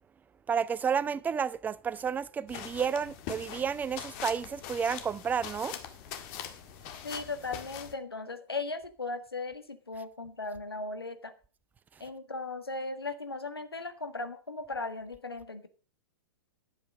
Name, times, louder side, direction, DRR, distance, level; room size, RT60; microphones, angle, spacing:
voice 1, 0.5-5.7, right 7 dB, 15° right, 0.5 m, -31 dB
sound 1, 2.5-7.9, left 10 dB, 40° left, 1.7 m, -42 dB
voice 2, 7.0-11.3 12.0-15.7, left 3 dB, 85° left, 1.6 m, -37 dB
11.0 x 8.3 x 5.1 m
figure-of-eight pair, 105°, 12 cm